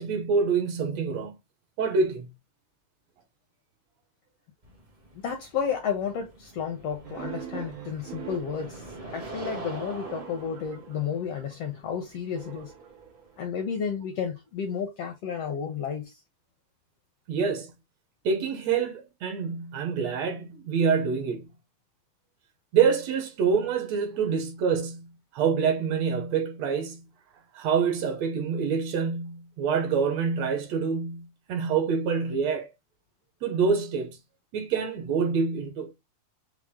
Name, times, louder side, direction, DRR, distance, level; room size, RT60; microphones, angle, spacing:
voice 1, 0.0-1.4 1.8-2.3 17.3-17.7 18.3-21.5 22.7-27.0 27.5-32.7 33.4-34.2 34.5-36.0, right 6 dB, 70° right, 1.8 m, -26 dB
sound 1, 4.6-13.5, right 2 dB, 50° right, 0.5 m, -44 dB
voice 2, 5.1-12.7 13.4-16.2, left 7 dB, 75° left, 1.4 m, -32 dB
sound 2, 7.0-11.6 12.4-13.9, right 9 dB, 90° right, 2.5 m, -43 dB
6.0 x 2.1 x 3.5 m
omnidirectional pair, 3.4 m